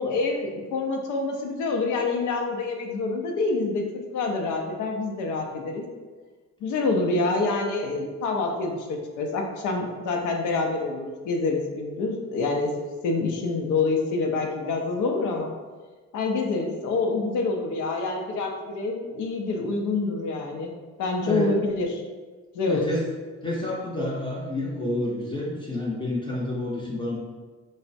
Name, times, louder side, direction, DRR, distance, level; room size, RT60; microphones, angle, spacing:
voice 1, 0.0-5.9 6.6-12.7 13.0-15.5 16.1-20.7 21.0-22.0 22.5-22.9, left 3 dB, 80° left, 2 dB, 0.5 m, -27 dB
voice 2, 21.2-21.5 22.7-23.0 23.4-27.2, left 1 dB, 15° left, -5 dB, 0.5 m, -29 dB
3.2 x 2.0 x 2.5 m, 1.4 s
cardioid pair, 90°, 30 cm